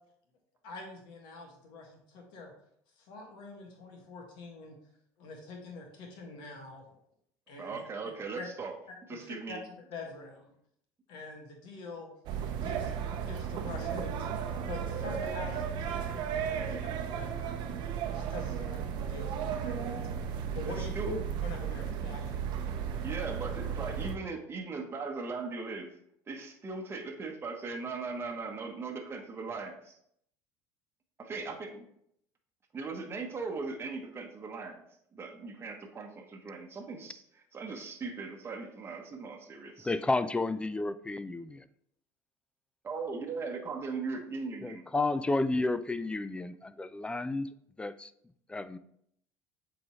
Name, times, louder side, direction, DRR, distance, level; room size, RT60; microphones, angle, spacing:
voice 1, 0.6-2.5 3.0-4.8 5.2-6.8 7.5-7.8 8.4-8.5 9.2-10.5 11.1-12.1 12.5-17.7 18.1-20.1 20.5-22.4 22.9-23.1, left 3 dB, 65° left, 1 dB, 1.8 m, -45 dB
voice 2, 7.6-8.7 9.1-9.6 19.8-20.2 20.7-21.1 23.0-25.9 26.3-30.0 31.2-31.9 32.7-34.8 35.1-37.2 37.5-39.9 42.8-44.8, right 4 dB, 30° right, 1 dB, 1.0 m, -39 dB
sound 1, 12.3-24.2, right 7 dB, 65° right, 0.7 m, -34 dB
voice 3, 39.8-41.7 44.6-47.5 47.8-48.1 48.5-48.8, left 2 dB, 10° left, 14 dB, 0.4 m, -31 dB
7.6 x 4.0 x 3.0 m, 0.70 s
supercardioid pair, 85°, 8 cm